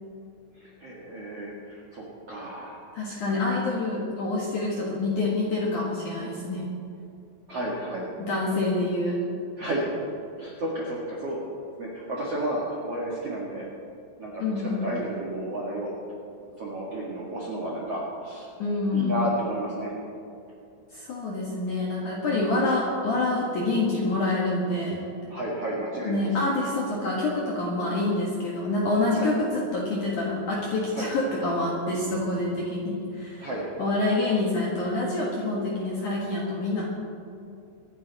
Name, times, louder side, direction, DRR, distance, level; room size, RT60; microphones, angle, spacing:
voice 1, 0.8-2.8 3.3-3.7 7.5-8.1 9.6-9.9 10.4-11.5 11.8-13.6 14.2-15.9 16.6-18.5 18.9-19.9 25.3-26.3 29.2-29.3 30.9-31.1 33.4-33.8, right 1 dB, 55° right, -5 dB, 1.7 m, -32 dB
voice 2, 2.9-6.7 8.2-9.2 14.4-14.9 18.6-19.1 20.9-25.1 26.0-33.5 33.8-36.9, left 2 dB, 60° left, -4 dB, 2.1 m, -27 dB
24.5 x 9.9 x 4.1 m, 2.6 s
omnidirectional pair, 5.7 m